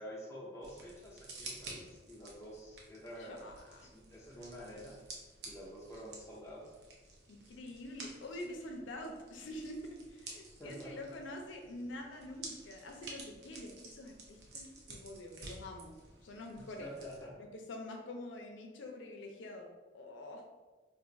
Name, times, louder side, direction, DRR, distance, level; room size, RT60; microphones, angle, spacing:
voice 1, 0.0-3.6 3.9-5.0 5.4-6.7 10.6-11.1 16.6-17.4, equal, 15° left, -4 dB, 0.6 m, -48 dB
sound 1, 0.6-17.2, right 2 dB, 60° right, 0.6 m, -52 dB
voice 2, 3.2-3.9 7.3-16.9 17.4-19.7 19.9-20.4, left 1 dB, 85° left, 2 dB, 0.5 m, -46 dB
2.5 x 2.3 x 3.8 m, 1.3 s
head